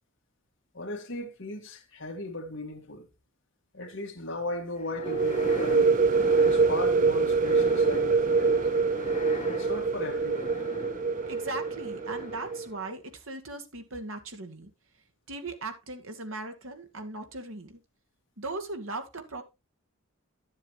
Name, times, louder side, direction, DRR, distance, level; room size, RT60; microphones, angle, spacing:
voice 1, 0.7-3.1 3.7-6.0 6.4-8.6 9.5-10.5, left 1 dB, 60° left, 2.0 m, -37 dB
sound 1, 4.8-12.8, left 2 dB, 35° left, 1.0 m, -41 dB
sound 2, 5.0-12.7, right 4 dB, 35° right, 0.4 m, -25 dB
voice 2, 11.3-14.7 15.3-17.8 18.4-19.4, right 2 dB, 75° right, 2.1 m, -38 dB
12.5 x 7.4 x 3.1 m
head